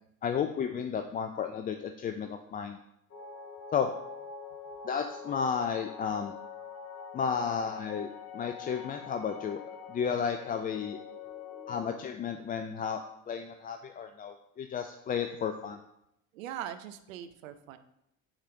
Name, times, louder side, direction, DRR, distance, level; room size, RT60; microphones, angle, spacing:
voice 1, 0.2-2.8 3.7-3.9 4.8-6.3 7.1-9.6 9.9-11.0 11.7-13.0 13.3-15.8, left 7 dB, 20° left, 6 dB, 0.4 m, -33 dB
sound 1, 3.1-12.0, left 6 dB, 40° left, 1.4 m, -45 dB
voice 2, 16.3-17.8, right 10 dB, 75° right, 10 dB, 0.7 m, -41 dB
6.0 x 4.1 x 5.1 m, 0.80 s
hypercardioid pair, 65°, 40 cm